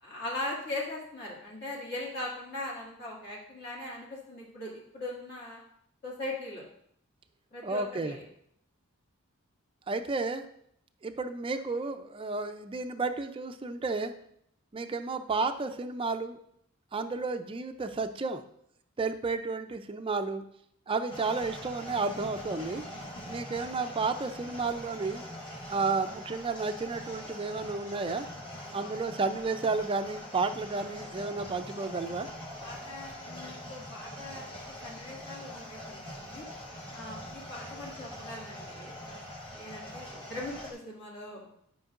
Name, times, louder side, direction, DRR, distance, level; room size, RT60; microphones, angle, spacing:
voice 1, 0.0-5.6 6.0-6.6 7.5-8.3 28.6-28.9 32.6-36.5 36.9-41.4, left 2 dB, 50° left, -4 dB, 2.2 m, -40 dB
voice 2, 7.6-8.2 9.9-10.5 11.0-14.1 14.7-16.4 16.9-18.4 19.0-20.4 20.9-22.8 23.3-25.2 25.7-28.3 28.7-32.3, right 4 dB, 25° right, 8 dB, 0.4 m, -32 dB
sound 1, 21.1-40.7, left 1 dB, 25° left, 1.1 m, -43 dB
10.5 x 5.3 x 2.5 m, 0.71 s
head